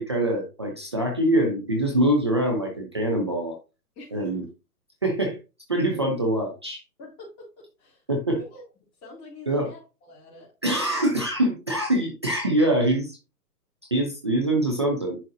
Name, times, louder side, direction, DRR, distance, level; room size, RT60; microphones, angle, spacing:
voice 1, 0.0-3.6 4.1-4.4 5.0-5.4 5.7-6.8 8.1-8.4 9.5-9.7 10.6-13.2 13.9-15.2, right 1 dB, 20° right, 1 dB, 0.4 m, -24 dB
voice 2, 3.9-4.5 5.9-6.0 7.0-8.0 8.3-8.6 9.0-10.5, left 2 dB, 20° left, -5 dB, 3.4 m, -45 dB
10.5 x 3.8 x 2.6 m, 0.29 s
hypercardioid pair, 140°, 48 cm